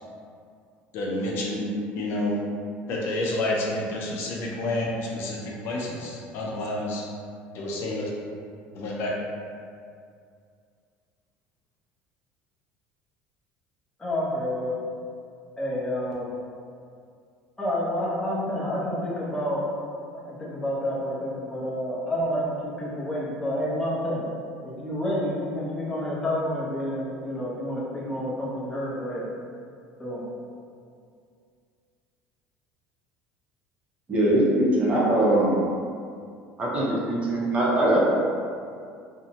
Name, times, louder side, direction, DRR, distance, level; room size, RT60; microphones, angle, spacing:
voice 1, 0.9-2.4 2.9-7.0 7.5-8.1 8.7-9.1, left 1 dB, 60° left, -3 dB, 0.4 m, -29 dB
voice 2, 14.0-14.7 15.6-16.3 17.6-19.6 20.1-24.2 24.6-29.3 30.0-30.2, equal, 10° left, -7 dB, 0.7 m, -29 dB
voice 3, 34.1-35.6 36.6-38.1, right 1 dB, 30° right, -6 dB, 0.6 m, -21 dB
2.6 x 2.1 x 2.7 m, 2.3 s
cardioid pair, 130°, 5 cm